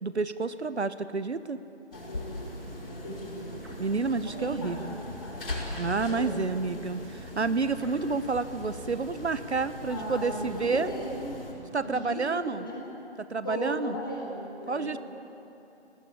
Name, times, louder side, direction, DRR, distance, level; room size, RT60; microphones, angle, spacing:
voice 1, 0.0-1.6 3.8-4.9 5.8-10.9 11.7-12.6 13.3-13.9 14.7-15.0, right 4 dB, 70° right, 13 dB, 1.1 m, -29 dB
sound 1, 1.9-11.5, left 1 dB, 55° left, 7.0 m, -40 dB
voice 2, 1.9-2.4 2.8-3.6 4.2-5.5 6.0-6.6 9.9-11.4 11.8-12.8 13.4-15.0, equal, 20° left, -3 dB, 4.2 m, -37 dB
sound 2, 3.6-4.0 5.4-6.0 7.8-8.2, right 2 dB, 20° right, 2.2 m, -50 dB
26.5 x 19.0 x 9.8 m, 2.8 s
figure-of-eight pair, 180°, 34 cm